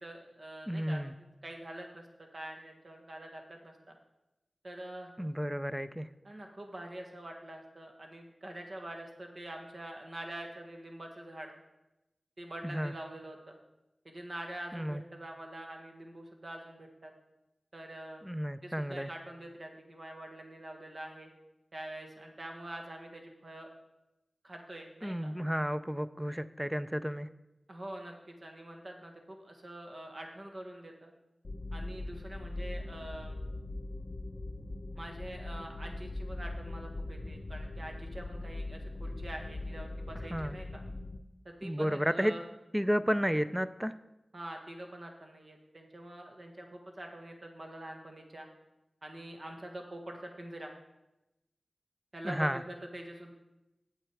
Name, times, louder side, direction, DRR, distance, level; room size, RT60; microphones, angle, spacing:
voice 1, 0.0-3.9 4.6-5.1 6.2-11.5 12.4-13.6 14.0-17.1 17.7-18.2 18.6-21.3 21.7-23.7 24.4-25.3 27.7-31.1 31.7-33.4 34.9-40.8 41.4-42.5 44.3-48.5 49.0-50.7 52.1-53.3, right 1 dB, 55° right, 2 dB, 1.5 m, -45 dB
voice 2, 0.7-1.1 5.2-6.1 12.7-12.9 14.7-15.0 18.2-19.1 25.0-27.3 40.3-40.5 41.6-42.3 42.7-43.9 52.2-52.6, equal, 10° right, 13 dB, 0.4 m, -32 dB
sound 1, 31.4-41.2, left 2 dB, 55° left, 0.5 m, -40 dB
8.1 x 8.0 x 4.7 m, 0.94 s
wide cardioid pair, 65°, 0 cm